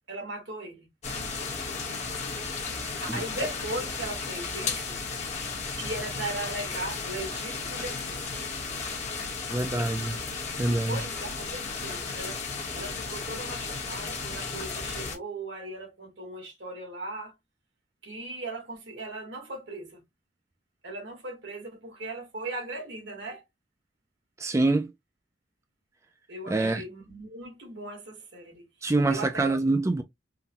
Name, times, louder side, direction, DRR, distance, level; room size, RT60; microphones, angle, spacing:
voice 1, 0.1-0.9 3.0-5.0 5.8-8.2 10.7-12.4 12.7-17.4 18.0-20.0 20.8-23.4 26.3-28.7 29.1-29.5, right 2 dB, 80° right, 1.6 m, -38 dB
sound 1, 1.0-15.2, left 4 dB, 40° left, 1.1 m, -34 dB
voice 2, 9.5-10.2 10.6-11.0 24.4-24.9 26.5-26.8 28.8-30.0, right 2 dB, 15° right, 0.3 m, -25 dB
3.7 x 2.2 x 2.8 m
head